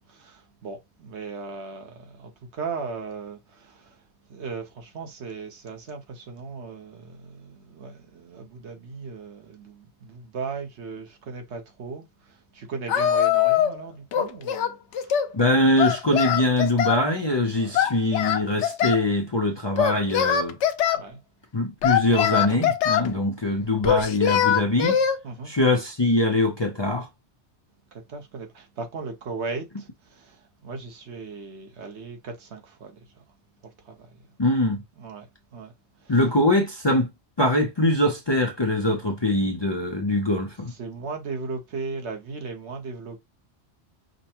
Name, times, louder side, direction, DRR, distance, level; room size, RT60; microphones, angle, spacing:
voice 1, 0.1-4.0 4.3-15.2 17.5-17.8 20.9-21.2 23.5-23.6 25.2-25.5 27.9-33.2 33.8-34.2 35.0-35.3 35.5-35.7 36.0-36.2 40.8-43.2, right 4 dB, 75° right, 1.2 m, -37 dB
Singing, 12.9-13.8 14.1-15.3 15.8-17.0 17.7-19.0 19.8-21.0 21.8-23.1 23.8-25.2, left 9 dB, 80° left, 0.9 m, -22 dB
voice 2, 15.3-20.6 21.5-25.0 25.4-27.1 34.4-34.8 36.1-37.1 37.4-40.7, left 1 dB, 30° left, 0.5 m, -23 dB
5.1 x 2.2 x 2.8 m
omnidirectional pair, 1.2 m